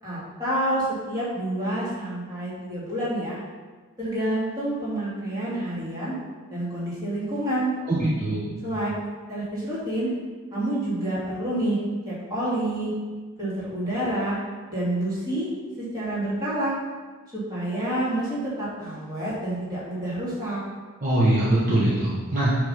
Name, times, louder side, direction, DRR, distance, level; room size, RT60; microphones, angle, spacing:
voice 1, 0.0-3.4 4.0-6.2 6.5-7.7 8.6-8.9 9.3-10.1 10.5-11.8 12.0-12.9 13.4-14.4 14.7-15.5 15.8-16.8 17.3-20.6, right 1 dB, 15° right, -9 dB, 2.3 m, -28 dB
voice 2, 7.9-8.6 21.0-22.6, right 1 dB, 40° right, -7 dB, 1.0 m, -22 dB
7.8 x 3.6 x 5.6 m, 1.4 s
head